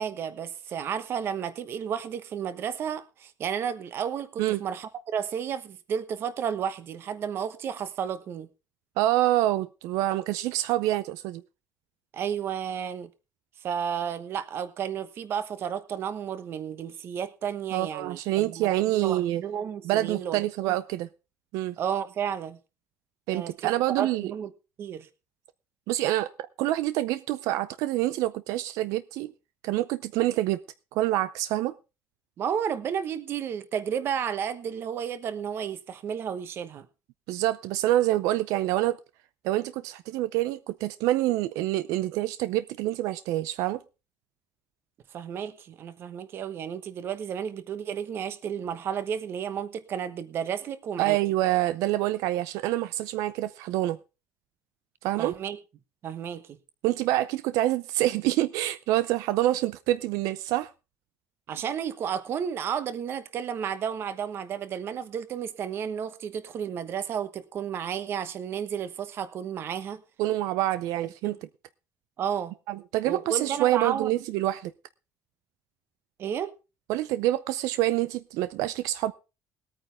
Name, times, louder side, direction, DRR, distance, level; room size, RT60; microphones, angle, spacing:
voice 1, 0.0-8.5 12.1-13.1 13.6-20.8 21.8-22.6 23.3-23.7 24.0-24.5 24.8-25.1 32.4-36.9 45.1-51.2 55.2-55.6 56.0-56.6 61.5-70.0 71.2-71.4 72.2-72.5 73.0-74.1 76.2-76.5, right 8 dB, 45° right, 1.1 m, -32 dB
voice 2, 9.0-11.4 17.7-19.4 19.8-21.1 21.5-21.8 23.3-24.3 25.9-26.3 26.6-29.3 29.6-30.6 30.9-31.7 37.3-39.0 39.4-43.8 51.0-54.0 55.0-55.4 56.8-60.7 70.2-71.4 72.7-74.7 76.9-79.1, right 15 dB, 90° right, 0.5 m, -26 dB
20.0 x 9.0 x 3.4 m
cardioid pair, 150°, 5 cm